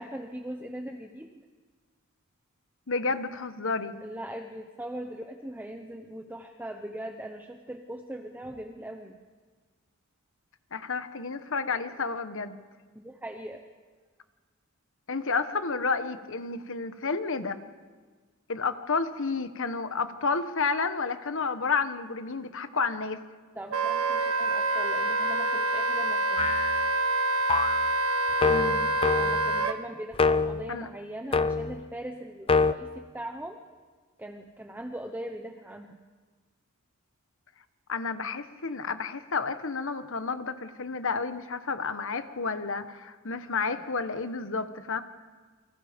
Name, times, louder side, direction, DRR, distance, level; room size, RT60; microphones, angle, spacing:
voice 1, 0.0-1.4 4.0-9.2 12.9-13.6 23.5-26.6 29.2-33.6 34.2-36.0, right 1 dB, 10° right, 4 dB, 1.0 m, -40 dB
voice 2, 2.9-3.9 10.7-12.6 15.1-17.6 18.5-23.2 28.4-28.9 30.7-30.9 37.9-45.0, left 4 dB, 60° left, 10 dB, 1.3 m, -31 dB
Wind instrument woodwind instrument, 23.7-29.8, right 2 dB, 80° right, 1.4 m, -26 dB
sound 1, 26.4-26.8 27.5-27.9 28.4-29.6 30.1-30.6 31.3-31.8 32.5-32.7, left 4 dB, 25° left, 0.6 m, -25 dB
29.0 x 24.0 x 5.3 m, 1.4 s
head